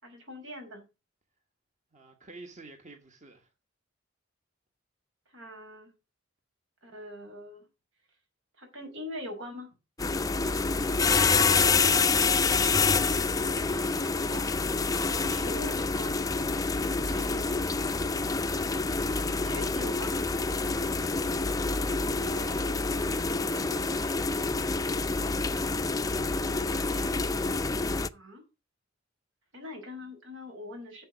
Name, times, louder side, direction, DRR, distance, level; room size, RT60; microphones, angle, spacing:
voice 1, 0.0-0.9 5.3-5.9 6.8-7.7 8.6-9.7 13.6-14.5 15.0-16.3 19.2-20.3 26.5-27.2 28.1-28.4 29.5-31.0, left 1 dB, 80° right, 5.2 m, -43 dB
voice 2, 1.9-3.5 17.0-17.5 22.2-23.2 23.5-24.4, right 3 dB, 40° right, 1.6 m, -49 dB
sound 1, 10.0-28.1, left 4 dB, 20° left, 0.5 m, -27 dB
8.7 x 7.1 x 6.3 m
head